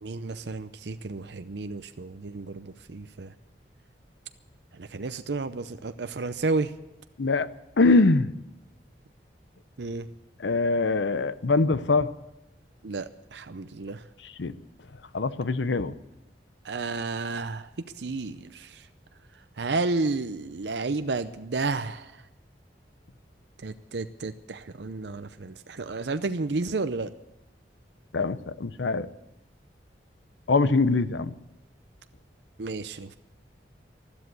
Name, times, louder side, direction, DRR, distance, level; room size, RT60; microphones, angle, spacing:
voice 1, 0.0-2.6 2.9-3.3 4.9-6.7 9.8-10.1 12.8-14.0 16.7-17.7 18.0-18.7 19.6-22.0 23.6-27.1 32.6-33.1, right 3 dB, 75° right, 10 dB, 0.6 m, -31 dB
voice 2, 7.8-8.3 10.4-12.1 14.4-14.5 15.1-15.9 28.1-29.1 30.5-31.3, left 3 dB, 90° left, 14 dB, 0.7 m, -23 dB
13.5 x 12.5 x 8.2 m, 0.91 s
head